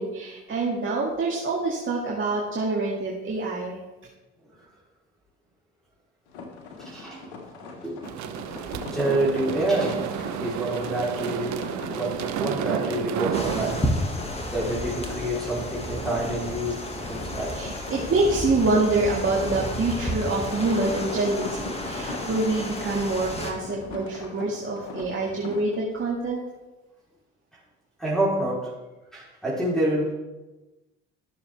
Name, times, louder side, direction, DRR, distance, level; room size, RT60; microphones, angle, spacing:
voice 1, 0.0-3.8 17.5-26.4, right 2 dB, 35° right, -3 dB, 2.1 m, -26 dB
sound 1, 6.3-25.8, left 3 dB, 80° left, 1.5 m, -40 dB
voice 2, 6.8-8.0 8.9-10.0 10.4-11.6 11.9-13.8 14.5-17.7 28.0-28.7 29.1-30.1, right 1 dB, ahead, -8 dB, 3.8 m, -28 dB
sound 2, 8.0-13.9, right 9 dB, 55° right, 0.9 m, -31 dB
sound 3, 13.3-23.5, left 1 dB, 20° left, 1.9 m, -32 dB
13.5 x 6.9 x 3.5 m, 1.1 s
hypercardioid pair, 60°, 34 cm